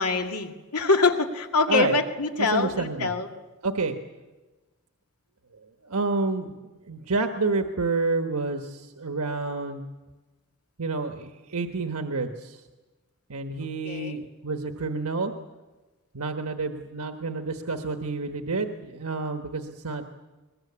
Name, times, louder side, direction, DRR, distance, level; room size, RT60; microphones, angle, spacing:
voice 1, 0.0-3.3 13.6-14.2, left 4 dB, 90° left, 4 dB, 2.2 m, -25 dB
voice 2, 2.4-3.1 3.6-4.0 5.9-9.8 10.8-12.6 13.3-15.3 16.1-20.0, right 3 dB, 85° right, 5 dB, 1.3 m, -29 dB
21.5 x 21.0 x 8.6 m, 1.2 s
head